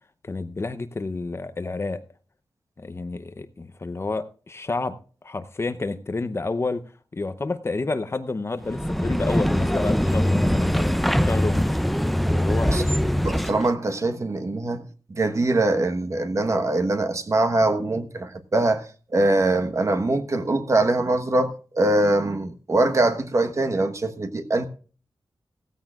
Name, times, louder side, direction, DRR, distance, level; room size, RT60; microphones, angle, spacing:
voice 1, 0.2-2.0 2.8-5.0 5.2-6.8 7.1-11.7 12.3-12.9, left 3 dB, 30° left, 0.7 m, -29 dB
sound 1, 8.6-13.7, equal, ahead, 0.5 m, -22 dB
voice 2, 13.2-14.8 15.2-18.8 19.1-24.7, right 2 dB, 40° right, 1.2 m, -23 dB
16.0 x 14.5 x 2.4 m
wide cardioid pair, 130°, 8 cm